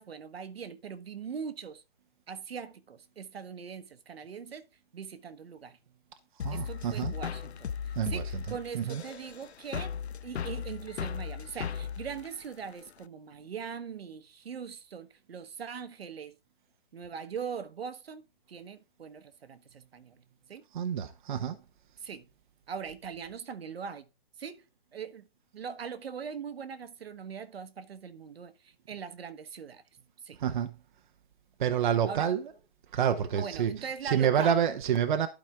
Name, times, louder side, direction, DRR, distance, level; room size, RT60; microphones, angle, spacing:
voice 1, 0.0-1.8 2.3-4.6 4.9-5.8 6.5-10.0 10.2-16.3 16.9-18.2 18.5-20.2 20.5-20.6 22.0-22.3 22.7-24.1 24.4-24.6 24.9-25.2 25.5-29.8 30.2-30.4 32.1-32.3 33.3-34.6, right 6 dB, 70° right, 1.3 m, -41 dB
sound 1, 6.4-13.0, left 7 dB, 85° left, 0.7 m, -37 dB
voice 2, 6.4-7.1 8.0-9.0 20.7-21.5 30.4-30.7 31.6-32.4 32.9-33.7 34.0-35.3, right 8 dB, 50° right, 0.9 m, -28 dB
12.0 x 5.1 x 3.6 m
hypercardioid pair, 150°, 32 cm